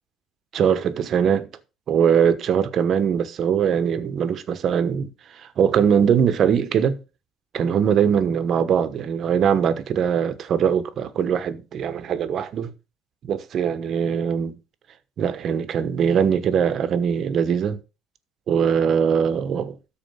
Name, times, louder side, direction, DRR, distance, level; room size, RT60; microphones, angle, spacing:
voice 1, 0.5-1.5 1.9-7.0 7.5-12.7 13.2-14.6 15.2-17.8 18.5-19.8, right 7 dB, 50° right, 1.1 m, -21 dB
13.0 x 4.4 x 5.7 m
cardioid pair, 125°, 0 cm